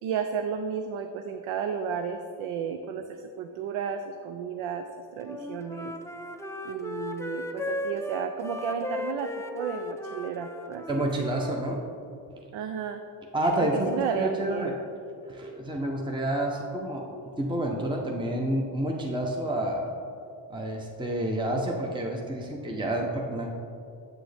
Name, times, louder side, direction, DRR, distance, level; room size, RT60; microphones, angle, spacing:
voice 1, 0.0-4.8 5.1-5.9 6.6-11.1 12.5-13.0 13.6-14.8, right 7 dB, 85° right, 7 dB, 0.5 m, -33 dB
Wind instrument woodwind instrument, 5.2-11.6, left 1 dB, 5° left, 0.3 m, -36 dB
voice 2, 10.9-11.8 13.3-14.7 15.3-17.0 17.4-19.9 20.5-23.5, right 1 dB, 10° right, 0 dB, 0.8 m, -29 dB
7.8 x 6.1 x 3.4 m, 2.5 s
supercardioid pair, 60°, 48 cm